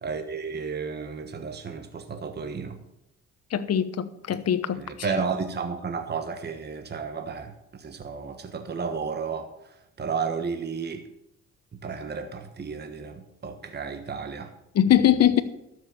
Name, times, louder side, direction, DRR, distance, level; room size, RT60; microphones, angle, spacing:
voice 1, 0.0-2.8 4.7-11.1 11.7-14.5 14.9-15.4, right 5 dB, 35° right, 1.3 m, -33 dB
voice 2, 3.5-4.8 14.7-15.4, left 10 dB, 55° left, 1.0 m, -21 dB
12.5 x 6.4 x 7.1 m
cardioid pair, 90°, 30 cm